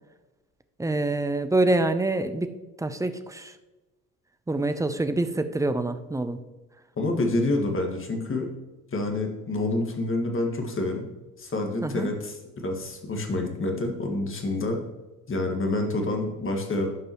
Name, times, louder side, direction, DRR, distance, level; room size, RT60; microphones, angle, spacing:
voice 1, 0.8-2.5 2.8-3.5 4.5-6.4 11.8-12.1, right 2 dB, 10° right, 10 dB, 0.6 m, -26 dB
voice 2, 7.0-8.5 8.9-11.1 11.4-14.8 15.3-16.9, left 2 dB, 30° left, 3 dB, 1.8 m, -27 dB
13.0 x 5.4 x 3.0 m, 1.1 s
hypercardioid pair, 60°, 43 cm